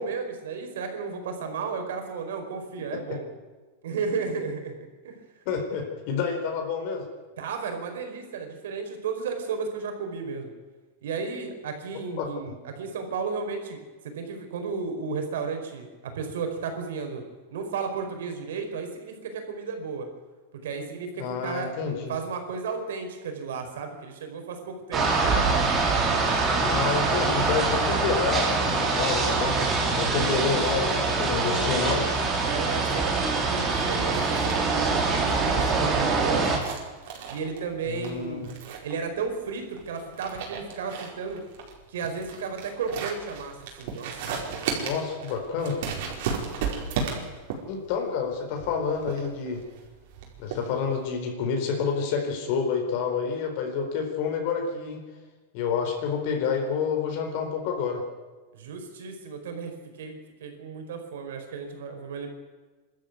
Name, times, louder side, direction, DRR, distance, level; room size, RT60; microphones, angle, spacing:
voice 1, 0.0-3.3 3.8-5.2 7.4-10.5 11.0-13.8 14.1-17.2 17.5-20.1 20.6-21.7 22.1-25.7 32.4-36.5 37.3-38.4 38.8-41.4 41.9-44.6 58.5-62.3, right 5 dB, 80° right, 5 dB, 4.8 m, -33 dB
voice 2, 5.5-7.1 12.2-12.3 21.2-22.1 26.6-29.6 30.0-32.2 37.9-38.5 44.8-45.8 47.7-49.6 50.4-55.0 55.5-58.0, left 6 dB, 50° left, 2 dB, 4.3 m, -28 dB
sound 1, 24.9-36.6, right 3 dB, 20° right, 3.8 m, -24 dB
sound 2, 32.4-51.1, right 6 dB, 60° right, 4.9 m, -36 dB
24.5 x 13.0 x 9.4 m, 1.3 s
supercardioid pair, 155°, 0 cm